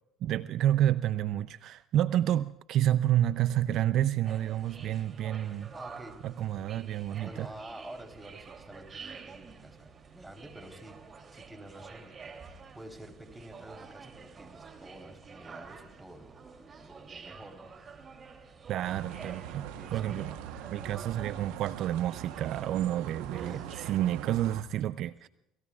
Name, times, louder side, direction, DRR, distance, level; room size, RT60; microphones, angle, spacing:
voice 1, 0.2-5.7 6.2-7.5 18.7-19.7 19.9-20.3 20.7-25.3, right 12 dB, 60° right, 16 dB, 0.5 m, -29 dB
sound 1, 4.3-23.9, right 5 dB, 40° right, 3.0 m, -49 dB
voice 2, 5.7-6.3 6.6-6.9 7.2-12.4 12.7-17.7 19.6-20.2 23.4-23.8, right 1 dB, 10° right, 4 dB, 3.7 m, -49 dB
sound 2, 18.8-24.6, right 10 dB, 80° right, 1.1 m, -42 dB
30.0 x 19.5 x 2.4 m, 0.84 s
hypercardioid pair, 70°, 0 cm